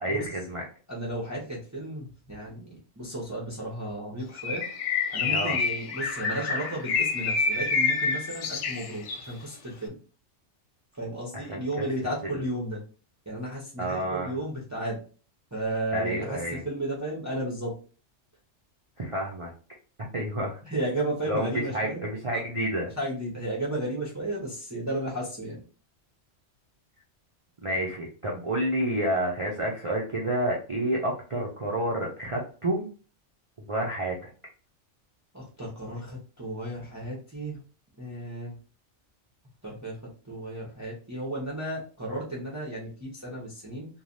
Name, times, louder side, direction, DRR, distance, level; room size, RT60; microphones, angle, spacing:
voice 1, 0.0-0.6 5.3-5.6 11.3-11.9 12.3-12.4 13.8-14.3 15.9-16.6 19.0-19.5 20.1-20.6 21.3-22.9 27.6-32.8 33.6-34.2, right 1 dB, 40° right, -3 dB, 0.4 m, -29 dB
voice 2, 0.9-4.6 5.1-9.9 10.9-12.8 13.3-15.0 15.5-17.7 20.7-22.1 22.3-22.4 23.0-25.6 35.3-37.6 38.0-38.5 39.6-40.0 40.2-43.9, right 1 dB, 15° right, -5 dB, 0.8 m, -33 dB
Bird, 4.4-9.3, left 4 dB, 75° left, 0.9 m, -28 dB
3.2 x 2.3 x 2.6 m, 0.38 s
omnidirectional pair, 1.2 m